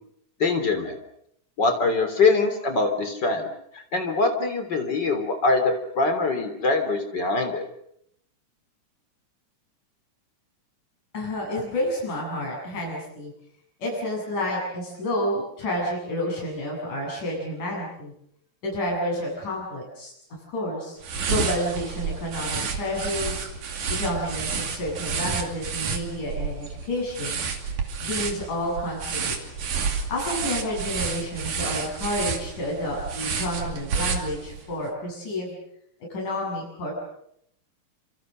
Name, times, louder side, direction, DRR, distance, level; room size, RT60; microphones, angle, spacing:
voice 1, 0.4-1.0 1.6-3.5 3.9-7.6, left 3 dB, 35° left, 6 dB, 3.8 m, -23 dB
voice 2, 11.1-13.3 13.8-18.1 18.6-21.0 21.3-23.4 23.9-27.4 28.0-29.4 30.1-35.6 36.1-36.9, left 1 dB, 90° left, -2 dB, 9.2 m, -30 dB
sound 1, 21.0-34.7, right 5 dB, 90° right, 4.2 m, -30 dB
29.0 x 26.5 x 6.5 m, 0.73 s
omnidirectional pair, 3.5 m